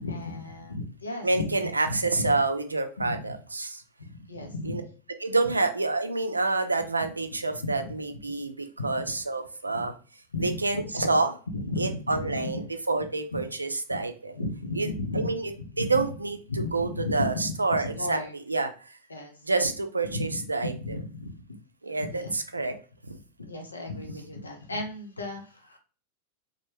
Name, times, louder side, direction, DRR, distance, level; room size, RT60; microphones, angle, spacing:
voice 1, 0.0-1.5 1.9-2.4 3.0-3.2 4.0-4.8 7.6-7.9 8.8-9.0 9.7-9.9 10.3-11.2 11.5-12.6 13.3-13.4 13.9-14.0 14.4-15.3 15.6-16.0 16.5-18.3 19.1-19.3 20.0-21.4 22.0-22.3 23.4-25.8, left 2 dB, 75° left, 3 dB, 0.5 m, -34 dB
voice 2, 1.2-3.8 4.6-4.8 5.2-9.9 10.4-11.3 11.8-14.4 14.8-14.9 15.1-15.5 15.8-18.2 18.5-18.7 19.4-21.0 21.8-22.7, right 3 dB, 80° right, 7 dB, 0.4 m, -28 dB
3.1 x 2.2 x 3.1 m, 0.39 s
figure-of-eight pair, 90°, 0 cm